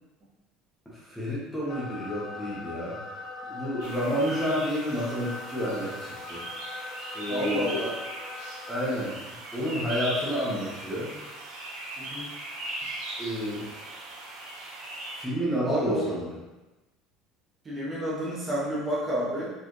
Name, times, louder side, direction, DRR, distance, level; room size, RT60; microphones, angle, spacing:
voice 1, 0.9-3.0 3.5-6.4 7.1-7.9 8.7-9.2 9.5-11.2 13.2-13.8 15.2-16.3, equal, 5° left, -8 dB, 1.0 m, -30 dB
sound 1, 1.7-8.9, left 3 dB, 25° left, 0.4 m, -40 dB
sound 2, 3.8-15.2, right 2 dB, 80° right, 1.1 m, -39 dB
voice 2, 7.3-7.9 12.0-12.3 15.6-16.1 17.6-19.5, equal, 20° right, -7 dB, 1.1 m, -29 dB
4.4 x 3.3 x 3.1 m, 1.1 s
cardioid pair, 160°, 0 cm